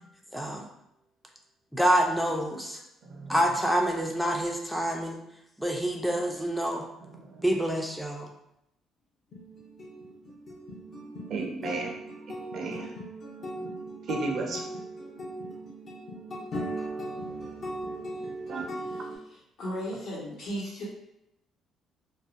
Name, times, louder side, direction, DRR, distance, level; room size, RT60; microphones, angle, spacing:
voice 1, 0.3-0.7 1.7-2.8 3.3-5.2 5.6-6.8 7.4-8.3, right 1 dB, ahead, 0 dB, 0.4 m, -27 dB
voice 2, 3.0-3.6 7.0-7.5 11.3-13.0 13.5-14.8 16.9-17.0 17.4-17.8 18.4-19.1, right 3 dB, 60° right, 1 dB, 0.5 m, -36 dB
sound 1, 9.3-19.2, right 1 dB, 55° left, 0.6 m, -38 dB
voice 3, 19.6-20.8, equal, 70° left, -6 dB, 1.1 m, -35 dB
2.5 x 2.1 x 2.4 m, 0.80 s
cardioid pair, 95°, 0 cm